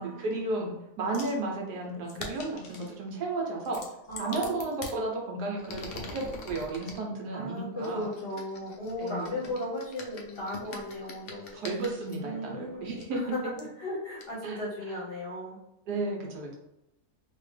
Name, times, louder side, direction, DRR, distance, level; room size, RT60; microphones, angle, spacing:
voice 1, 0.0-3.8 4.2-8.1 9.0-9.6 11.5-13.2 14.4-14.6 15.9-16.5, right 2 dB, 75° right, -1 dB, 1.3 m, -33 dB
sound 1, 1.1-1.4 2.1-2.9 3.6-5.0 5.5-7.0 7.8-12.2 13.0-13.1 13.6-13.7 14.2-14.3, left 3 dB, 85° left, 0.5 m, -44 dB
voice 2, 4.1-4.7 7.3-11.5 12.2-15.6, left 1 dB, 45° left, -6 dB, 1.0 m, -36 dB
3.0 x 2.8 x 3.2 m, 0.88 s
omnidirectional pair, 1.7 m